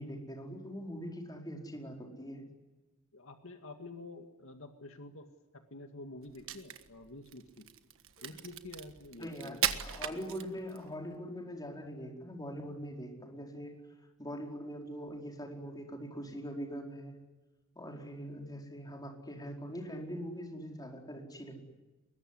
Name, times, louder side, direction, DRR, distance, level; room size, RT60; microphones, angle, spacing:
voice 1, 0.0-2.4 8.2-8.3 9.2-13.8 14.2-17.2 17.7-21.6, equal, 20° left, 1 dB, 4.7 m, -42 dB
voice 2, 3.1-5.3 5.5-7.7 8.2-9.6, left 2 dB, 65° left, 6 dB, 2.1 m, -48 dB
Crack, 6.3-10.9, right 9 dB, 65° right, 1.5 m, -38 dB
24.0 x 22.0 x 9.9 m, 1.1 s
head